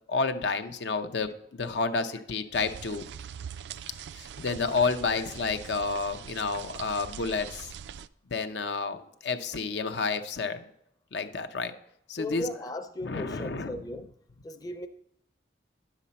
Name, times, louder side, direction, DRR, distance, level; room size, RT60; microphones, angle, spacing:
voice 1, 0.1-3.0 4.2-7.7 8.3-9.0 9.2-10.6 11.1-11.7 12.1-12.5 13.0-13.8, left 4 dB, 80° left, 8 dB, 0.7 m, -30 dB
sound 1, 2.5-8.1, right 8 dB, 80° right, 0.3 m, -43 dB
voice 2, 12.2-14.1 14.4-14.9, left 1 dB, 20° left, 7 dB, 0.5 m, -37 dB
10.0 x 7.1 x 4.2 m, 0.74 s
head